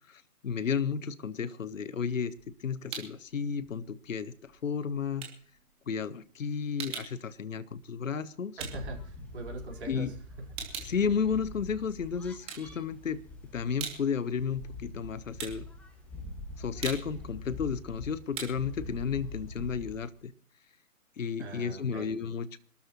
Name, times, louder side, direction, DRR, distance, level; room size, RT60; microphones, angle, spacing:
voice 1, 0.1-2.3 2.6-5.3 5.9-8.6 9.9-10.1 10.8-13.2 13.5-15.6 16.6-20.3 21.2-22.6, left 6 dB, 60° left, 15 dB, 1.1 m, -32 dB
Stove Knobs, 2.2-3.3 3.6-9.8 10.2-11.9 12.3-13.2 13.5-20.2, right 7 dB, 10° right, 2.6 m, -44 dB
sound 1, 8.6-20.0, left 2 dB, 5° left, 1.7 m, -45 dB
voice 2, 8.6-10.5 21.4-22.1, right 2 dB, 45° right, 0 dB, 4.6 m, -42 dB
26.5 x 13.0 x 3.1 m, 0.43 s
figure-of-eight pair, 140°, 45 cm